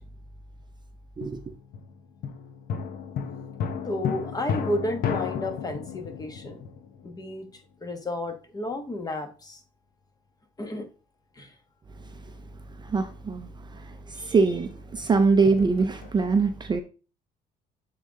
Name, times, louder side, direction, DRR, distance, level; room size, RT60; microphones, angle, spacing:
sound 1, 1.2-7.6 15.1-16.2, left 7 dB, 60° left, 0.8 m, -33 dB
voice 1, 3.8-6.6 7.0-7.4 7.8-9.6 10.6-10.9 11.4-11.5 14.1-14.3, left 1 dB, 20° left, 1.2 m, -32 dB
voice 2, 12.8-16.8, right 4 dB, 25° right, 0.6 m, -24 dB
8.2 x 3.8 x 3.6 m
cardioid pair, 110°, 17 cm